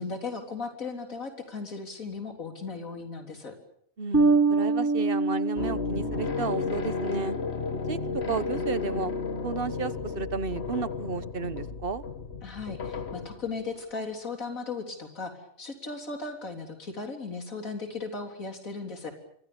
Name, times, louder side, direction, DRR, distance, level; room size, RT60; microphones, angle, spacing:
voice 1, 0.0-3.5 12.4-15.3 15.6-19.1, left 4 dB, 85° left, 4 dB, 4.1 m, -36 dB
voice 2, 4.0-7.4 7.9-8.0 8.3-9.1 9.4-12.0, right 4 dB, 45° right, 15 dB, 1.3 m, -32 dB
Bass guitar, 4.1-6.8, right 3 dB, 10° right, 1.6 m, -25 dB
sound 1, 5.6-13.6, left 4 dB, 50° left, 2.1 m, -33 dB
28.5 x 24.5 x 6.9 m, 0.65 s
omnidirectional pair, 1.4 m